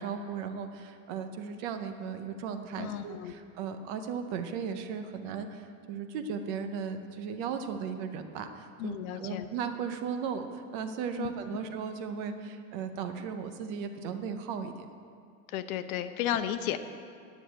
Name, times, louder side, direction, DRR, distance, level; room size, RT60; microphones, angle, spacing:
voice 1, 0.0-14.9, right 6 dB, 35° right, 7 dB, 0.6 m, -36 dB
voice 2, 2.8-3.3 8.8-9.5 11.2-11.3 15.5-16.8, left 11 dB, 85° left, 9 dB, 0.9 m, -33 dB
10.0 x 6.9 x 9.0 m, 2.3 s
supercardioid pair, 175°, 41 cm